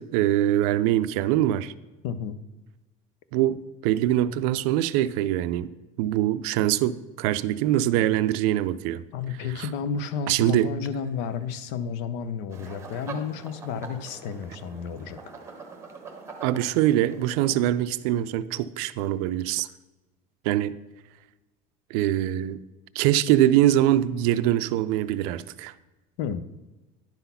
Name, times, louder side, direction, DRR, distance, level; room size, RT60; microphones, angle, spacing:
voice 1, 0.0-1.7 3.3-5.7 6.0-9.0 10.3-10.7 16.4-19.7 20.4-20.7 21.9-22.6 23.0-25.7, right 13 dB, 80° right, 0.4 m, -23 dB
voice 2, 2.0-2.4 9.1-15.2 26.2-26.5, left 6 dB, 70° left, 0.6 m, -32 dB
sound 1, 12.5-17.7, right 4 dB, 15° right, 0.9 m, -43 dB
10.5 x 4.0 x 5.6 m
cardioid pair, 165°, 18 cm